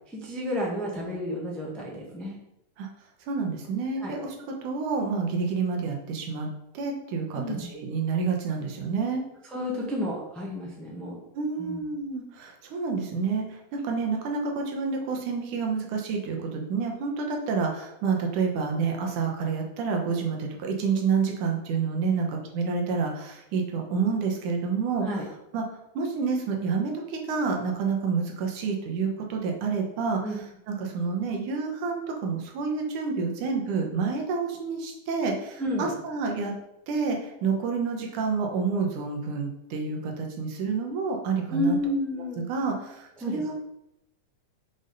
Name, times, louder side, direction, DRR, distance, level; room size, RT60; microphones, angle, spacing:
voice 1, 0.1-2.3 4.0-4.1 7.4-7.7 9.5-11.2 11.6-11.8 22.0-22.2 25.0-25.2 30.2-30.4 35.6-35.9 41.5-42.5 43.2-43.4, left 1 dB, ahead, -3 dB, 0.5 m, -31 dB
voice 2, 3.3-6.5 6.7-9.2 11.3-25.2 25.5-25.6 25.9-36.5 36.9-41.8 42.2-43.5, right 5 dB, 75° right, 2 dB, 2.6 m, -29 dB
6.2 x 5.2 x 5.3 m, 0.85 s
omnidirectional pair, 3.6 m